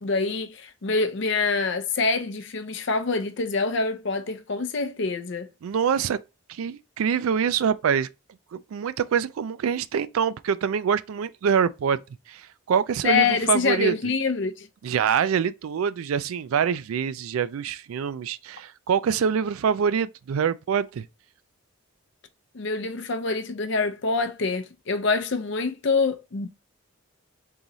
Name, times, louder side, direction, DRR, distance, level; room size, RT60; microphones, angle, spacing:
voice 1, 0.0-5.5 13.0-14.7 22.5-26.5, left 4 dB, 55° left, 0.6 m, -25 dB
voice 2, 5.6-6.2 6.5-8.1 8.5-12.0 12.3-13.9 14.8-21.1, right 7 dB, 80° right, 0.3 m, -25 dB
3.8 x 3.0 x 4.0 m
head